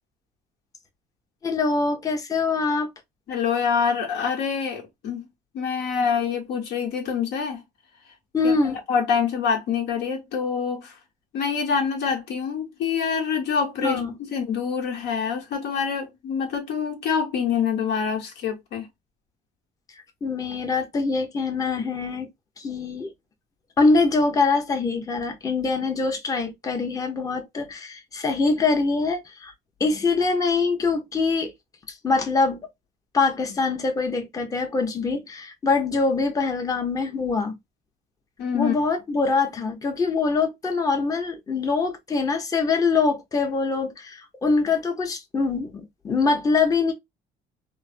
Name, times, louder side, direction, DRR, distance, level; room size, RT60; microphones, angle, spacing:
voice 1, 1.4-2.9 8.3-8.8 13.8-14.1 20.2-22.3 22.6-23.1 23.8-29.5 29.8-31.5 31.9-32.6 33.1-37.6 38.5-46.9, left 4 dB, 20° left, 0.6 m, -24 dB
voice 2, 3.3-5.3 5.5-7.6 8.4-8.5 8.9-10.9 11.3-14.0 14.3-18.9 38.4-38.8, left 6 dB, 80° left, 1.1 m, -26 dB
3.1 x 2.0 x 2.4 m
cardioid pair, 110°, 17 cm